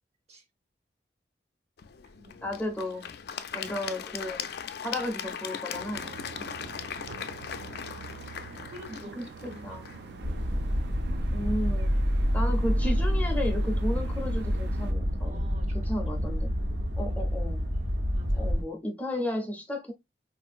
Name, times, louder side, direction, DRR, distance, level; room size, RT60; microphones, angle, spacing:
Applause / Crowd, 1.8-10.9, left 7 dB, 60° left, 0.3 m, -39 dB
voice 1, 2.4-3.2 3.5-4.5 4.8-6.1 9.6-9.8 11.3-11.9 12.3-15.5 15.8-16.5 17.0-17.6 18.3-19.9, left 1 dB, 10° left, 0.5 m, -33 dB
sound 1, 5.7-14.9, right 4 dB, 70° right, 0.3 m, -44 dB
voice 2, 6.3-7.3 8.5-10.5 15.2-15.9 17.0-17.2 18.1-18.5, equal, 40° right, 0.7 m, -50 dB
sound 2, 10.2-18.6, equal, 90° right, 0.9 m, -27 dB
3.7 x 2.4 x 2.3 m
head